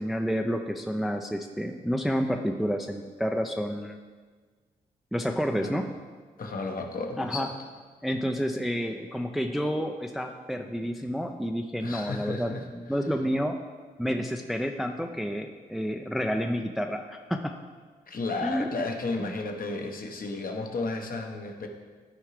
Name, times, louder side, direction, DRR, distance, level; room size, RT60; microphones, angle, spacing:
voice 1, 0.0-4.0 5.1-5.8 7.2-7.5 8.0-13.6 14.0-17.5 18.4-18.7 19.2-19.3, equal, ahead, 4 dB, 0.5 m, -29 dB
voice 2, 6.4-7.5 11.8-12.7 18.1-21.7, left 3 dB, 50° left, 3 dB, 1.1 m, -33 dB
12.5 x 4.6 x 3.2 m, 1.5 s
hypercardioid pair, 40°, 18 cm